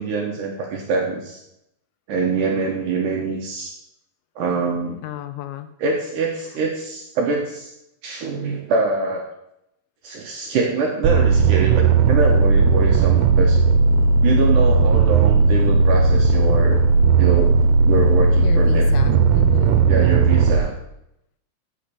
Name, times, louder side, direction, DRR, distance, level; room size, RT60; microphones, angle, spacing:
voice 1, 0.0-1.4 2.1-3.7 4.4-5.0 5.8-7.7 8.0-9.2 10.0-13.6 14.2-16.8 17.2-17.6 17.9-18.9 19.9-20.7, right 4 dB, 70° right, 1 dB, 2.1 m, -24 dB
voice 2, 5.0-5.7 18.4-19.8, left 13 dB, 85° left, 9 dB, 2.3 m, -33 dB
sound 1, 11.0-20.6, right 4 dB, 85° right, 2.7 m, -16 dB
7.4 x 6.4 x 6.8 m, 0.81 s
omnidirectional pair, 4.8 m